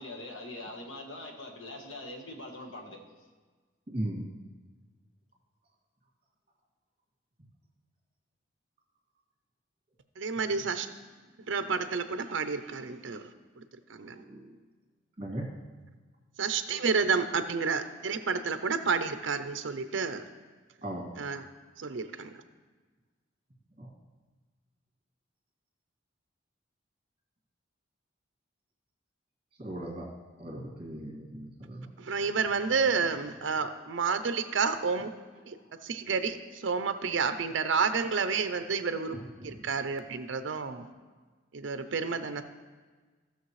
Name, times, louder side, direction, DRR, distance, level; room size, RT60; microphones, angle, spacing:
voice 1, 0.0-3.0, left 1 dB, 85° left, 1 dB, 1.4 m, -42 dB
voice 2, 3.9-4.3 10.4-10.7 11.5-11.8 14.0-14.6 15.2-15.5 20.8-21.3 23.8-23.9 29.6-30.1 30.4-31.9 39.1-39.7, right 1 dB, 30° right, -2 dB, 2.0 m, -39 dB
voice 3, 10.2-10.9 11.5-13.6 13.9-14.2 16.4-20.2 21.2-21.5 21.8-22.4 32.0-35.1 35.5-35.6 35.8-39.1 39.4-40.9 41.5-42.4, right 5 dB, 70° right, 10 dB, 0.5 m, -30 dB
16.0 x 6.3 x 3.2 m, 1.4 s
head